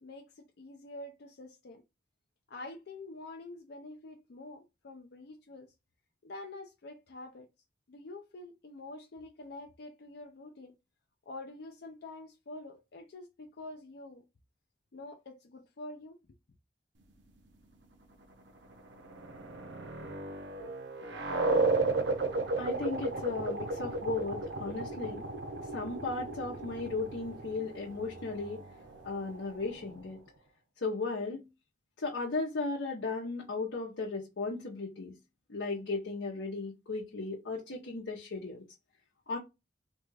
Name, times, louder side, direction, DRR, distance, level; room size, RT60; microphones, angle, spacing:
voice 1, 0.0-1.8 2.5-5.7 6.2-7.5 7.9-10.7 11.3-14.2 14.9-16.2, left 2 dB, 60° left, 0.5 m, -47 dB
sound 1, 18.7-30.1, right 3 dB, 65° right, 0.6 m, -34 dB
voice 2, 22.6-25.2 25.7-28.7 29.0-30.2 30.8-31.5 32.0-35.2 35.5-38.7 39.3-39.4, left 3 dB, 85° left, 0.8 m, -36 dB
3.4 x 2.3 x 3.2 m
head